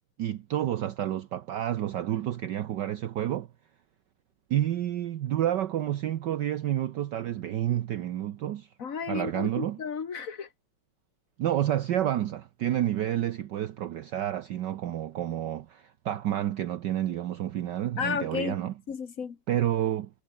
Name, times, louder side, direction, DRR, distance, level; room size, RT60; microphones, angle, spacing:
voice 1, 0.2-3.5 4.5-8.7 9.1-9.8 11.4-18.7 19.5-20.1, right 12 dB, 65° right, 1.3 m, -29 dB
voice 2, 8.8-10.5 18.0-18.6 18.9-19.4, left 6 dB, 45° left, 1.7 m, -33 dB
omnidirectional pair, 2.3 m